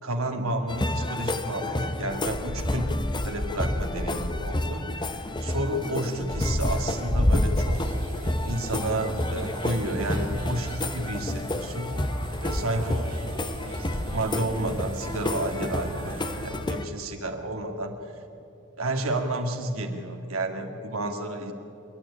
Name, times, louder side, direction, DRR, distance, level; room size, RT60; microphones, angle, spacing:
voice 1, 0.0-2.9 3.2-7.8 8.4-11.9 12.4-13.2 14.1-18.0 18.8-21.5, right 1 dB, 80° right, 4 dB, 2.2 m, -31 dB
sound 1, 0.7-16.9, left 1 dB, 20° left, 0.8 m, -29 dB
sound 2, 7.7-16.5, right 1 dB, 45° right, 4.4 m, -38 dB
27.5 x 10.0 x 9.8 m, 2.6 s
head